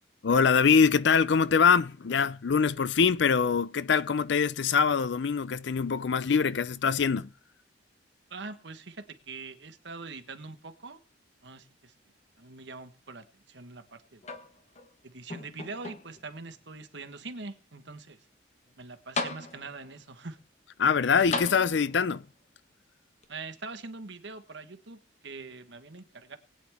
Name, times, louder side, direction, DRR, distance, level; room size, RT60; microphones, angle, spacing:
voice 1, 0.2-7.3 20.8-22.2, left 6 dB, 70° left, 0.5 m, -24 dB
voice 2, 8.3-11.0 11.4-11.9 12.4-14.2 15.0-18.2 18.8-20.4 23.3-26.4, right 3 dB, 70° right, 1.3 m, -43 dB
sound 1, 14.2-14.9 15.3-16.3 17.0-17.1 18.7-18.8 19.2-19.9 21.3-22.2 23.2-23.3, left 3 dB, 35° left, 1.1 m, -36 dB
20.5 x 8.8 x 3.5 m
head